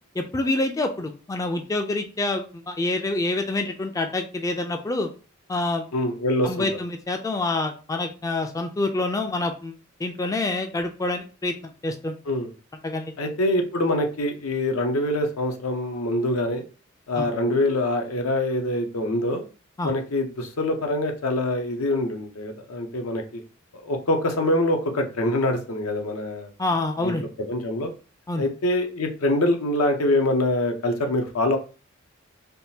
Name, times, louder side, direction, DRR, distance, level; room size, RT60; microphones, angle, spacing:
voice 1, 0.2-5.1 5.5-5.9 6.4-9.8 10.0-12.2 12.8-13.1 17.2-17.3 19.8-19.9 26.6-27.2 28.3-28.4, left 2 dB, 15° left, 5 dB, 0.3 m, -27 dB
voice 2, 5.9-6.7 12.3-12.5 13.2-16.6 17.1-19.4 19.8-23.4 23.8-26.5 27.0-27.2 27.5-27.9 28.4-31.6, left 1 dB, 85° left, 4 dB, 0.7 m, -24 dB
3.6 x 2.4 x 2.7 m, 0.34 s
head